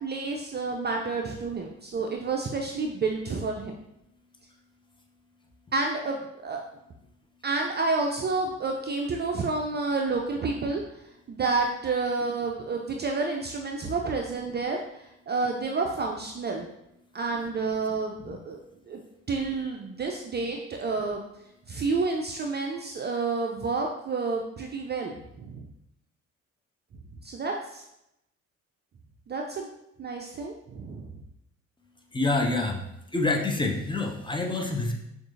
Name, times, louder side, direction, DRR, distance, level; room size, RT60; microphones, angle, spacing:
voice 1, 0.0-3.7 5.7-6.2 6.4-6.6 7.4-10.8 11.3-14.8 15.3-16.7 17.1-18.6 18.9-19.0 19.3-21.2 21.7-25.6 27.2-27.8 29.3-29.7 30.0-31.1, right 3 dB, 25° right, 1 dB, 0.5 m, -29 dB
voice 2, 32.1-32.8 33.1-34.9, left 2 dB, 10° left, 1 dB, 0.7 m, -27 dB
6.1 x 2.6 x 2.7 m, 0.83 s
figure-of-eight pair, 45°, 39 cm